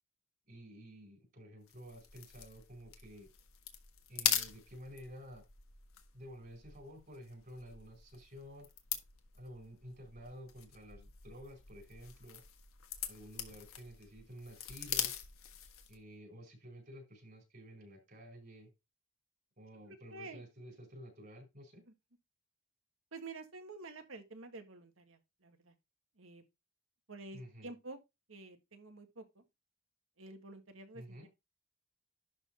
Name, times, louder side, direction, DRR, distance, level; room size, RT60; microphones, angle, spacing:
voice 1, 0.5-3.3 4.1-5.4 6.1-8.7 9.3-12.4 13.1-15.1 15.9-18.7 19.6-21.8 27.3-27.7 30.9-31.3, equal, 40° right, 4.5 m, -52 dB
sound 1, 1.7-16.0, left 10 dB, 85° left, 1.5 m, -42 dB
voice 2, 19.9-20.4 23.1-25.7 26.2-26.4 27.1-28.0 28.3-29.4 30.2-31.3, right 3 dB, 70° right, 1.7 m, -49 dB
11.5 x 3.9 x 4.3 m
head